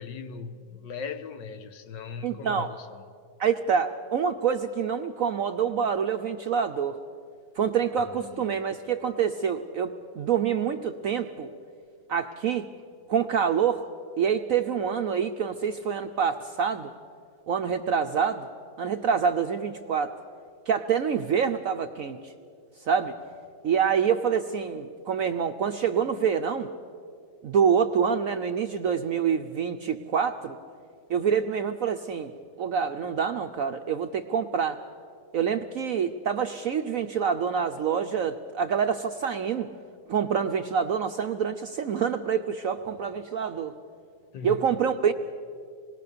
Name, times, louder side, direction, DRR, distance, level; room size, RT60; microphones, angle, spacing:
voice 1, 0.0-3.0 8.1-8.6 44.3-44.6, left 5 dB, 75° left, 1.6 m, -39 dB
voice 2, 2.2-2.7 3.4-7.0 7.6-11.5 12.1-12.7 13.1-13.8 14.2-16.9 17.5-18.5 18.8-20.1 20.7-22.3 22.9-23.1 23.6-26.7 27.4-30.6 31.1-32.3 32.6-34.8 35.3-39.7 40.1-43.7 44.4-45.1, right 7 dB, 65° right, 0.8 m, -26 dB
26.5 x 20.5 x 6.7 m
omnidirectional pair, 2.0 m